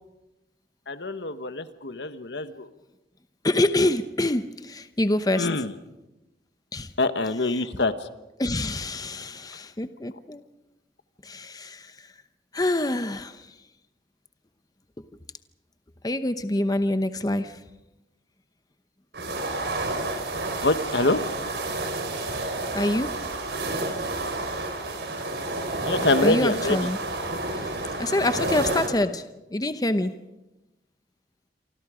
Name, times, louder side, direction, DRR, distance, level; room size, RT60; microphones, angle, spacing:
voice 1, 0.9-2.7 5.4-5.7 7.0-7.9 20.6-21.2 25.9-26.8, left 2 dB, 75° left, 10 dB, 1.4 m, -25 dB
voice 2, 3.4-5.5 6.7-6.9 8.4-10.4 11.2-12.1 12.5-13.5 16.0-17.6 22.7-23.1 26.2-27.0 27.5-27.7 28.0-29.3 29.5-30.1, left 1 dB, 20° left, 10 dB, 0.8 m, -26 dB
sound 1, 19.1-28.9, right 2 dB, 70° right, 4.7 m, -30 dB
28.5 x 25.0 x 5.0 m, 1.0 s
head